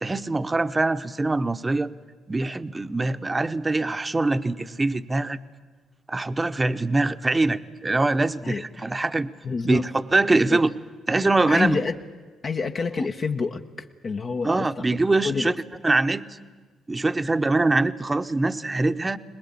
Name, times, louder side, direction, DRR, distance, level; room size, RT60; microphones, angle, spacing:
voice 1, 0.0-1.9 2.3-5.4 6.1-9.3 9.6-10.7 11.1-11.8 14.4-15.5 15.8-16.3 16.9-19.2, right 2 dB, 25° right, 11 dB, 0.9 m, -23 dB
voice 2, 8.4-8.9 9.4-9.9 10.3-10.6 11.5-12.0 12.4-14.9 15.2-15.5, left 4 dB, 50° left, 3 dB, 1.0 m, -28 dB
22.5 x 20.0 x 8.6 m, 1.4 s
supercardioid pair, 55°, 0 cm